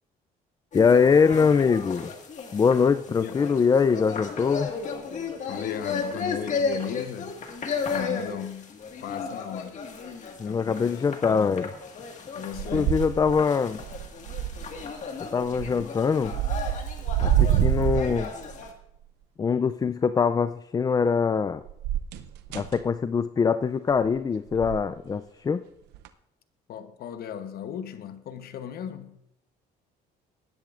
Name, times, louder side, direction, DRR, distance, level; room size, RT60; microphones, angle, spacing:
sound 1, 0.7-18.7, left 5 dB, 45° left, 1.8 m, -35 dB
voice 1, 0.7-2.1 2.5-4.7 10.4-11.7 12.7-13.8 15.3-16.4 17.2-18.3 19.4-21.6 22.5-25.6, left 5 dB, 20° left, 0.4 m, -23 dB
voice 2, 5.5-7.4 7.9-8.7 9.0-9.8 10.5-11.6 12.3-13.0 26.7-29.2, left 9 dB, 65° left, 1.0 m, -36 dB
sound 2, 12.5-13.5 13.8-14.8 15.4-15.8 16.2-18.7 21.7-22.8 23.9-24.1 24.5-24.9 25.9-26.1, right 11 dB, 90° right, 0.7 m, -27 dB
19.5 x 10.5 x 2.5 m
cardioid pair, 110°, 17 cm